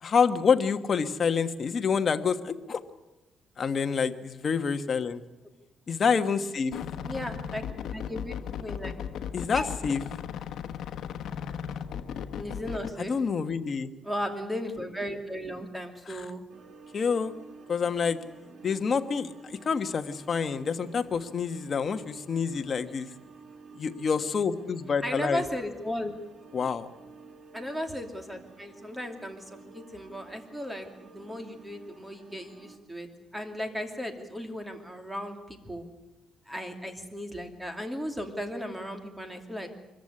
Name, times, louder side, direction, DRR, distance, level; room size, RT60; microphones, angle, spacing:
voice 1, 0.0-2.8 3.6-5.2 6.0-6.8 9.3-10.0 13.0-13.9 16.1-16.2 16.9-17.3 17.7-18.2 18.6-23.1 23.7-25.4 26.5-26.9, left 6 dB, 40° left, 7 dB, 1.3 m, -27 dB
sound 1, 6.7-12.9, left 8 dB, 70° left, 1.2 m, -36 dB
voice 2, 7.0-7.6 7.9-8.9 9.5-9.7 12.3-13.1 14.0-16.4 25.0-26.1 27.5-29.4 29.7-35.9 36.5-39.7, equal, 5° right, 5 dB, 2.6 m, -36 dB
sound 2, 16.5-32.8, right 4 dB, 50° right, 2.6 m, -52 dB
23.5 x 14.5 x 9.8 m, 1.0 s
cardioid pair, 135°, 0 cm